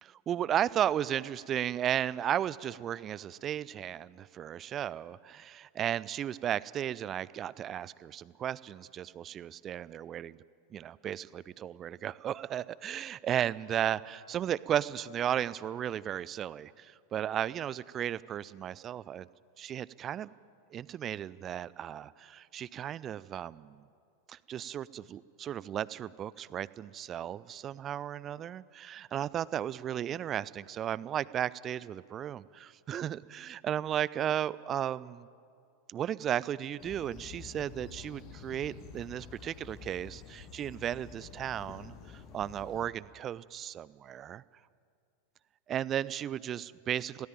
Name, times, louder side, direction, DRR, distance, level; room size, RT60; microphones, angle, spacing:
voice 1, 0.0-10.4 10.7-19.3 19.6-20.3 20.7-23.8 24.3-35.3 35.9-44.4 45.7-47.3, right 10 dB, 30° right, 20 dB, 0.5 m, -35 dB
sound 1, 36.8-42.9, left 7 dB, 40° left, 1.4 m, -49 dB
23.0 x 17.5 x 9.1 m, 2.4 s
figure-of-eight pair, 90°, 0 cm